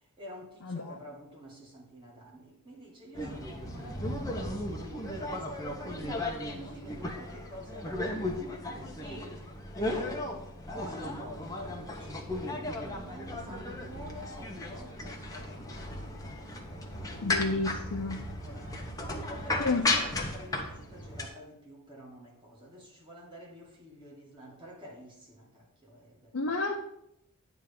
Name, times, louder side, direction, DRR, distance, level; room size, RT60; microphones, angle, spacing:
voice 1, 0.0-8.5 9.0-9.4 9.8-10.4 10.7-16.6 17.0-17.6 18.1-26.5, equal, 20° right, -4 dB, 2.3 m, -48 dB
voice 2, 0.6-0.9 17.2-18.2 19.6-19.8 26.3-26.8, left 3 dB, 85° left, -1 dB, 0.8 m, -30 dB
sound 1, 3.1-21.3, left 2 dB, 15° left, 0.9 m, -35 dB
9.2 x 3.6 x 7.0 m, 0.81 s
head